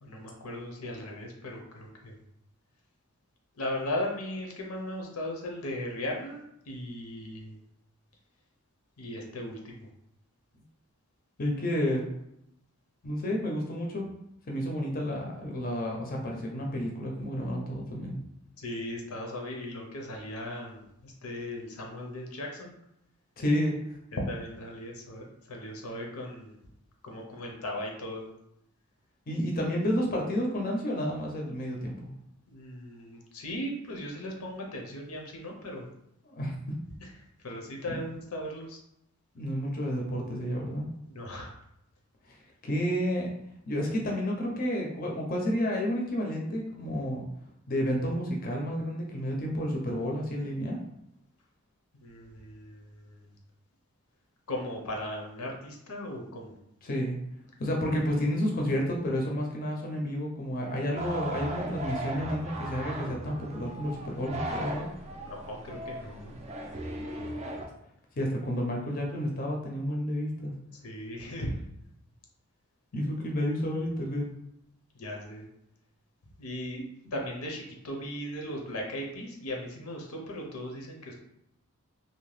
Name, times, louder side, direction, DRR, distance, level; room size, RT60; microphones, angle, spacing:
voice 1, 0.0-2.2 3.6-7.6 9.0-9.9 18.6-22.7 24.1-26.5 27.0-28.3 32.5-35.9 37.0-37.1 37.4-38.8 41.1-41.5 52.0-53.3 54.5-56.5 65.2-66.4 70.8-71.5 74.9-75.5 76.4-76.8 77.1-81.2, left 1 dB, 90° left, 0 dB, 0.6 m, -37 dB
voice 2, 11.4-12.1 13.0-14.1 14.5-18.2 23.4-23.8 29.3-32.1 36.3-36.5 37.9-38.0 39.3-40.9 42.3-42.4 42.6-43.3 43.7-47.2 47.7-50.8 56.8-57.2 57.6-64.9 68.2-70.5 72.9-74.3, equal, 40° left, 0 dB, 0.5 m, -30 dB
sound 1, 60.9-67.7, right 1 dB, 30° right, 0.3 m, -37 dB
2.7 x 2.1 x 3.1 m, 0.78 s
head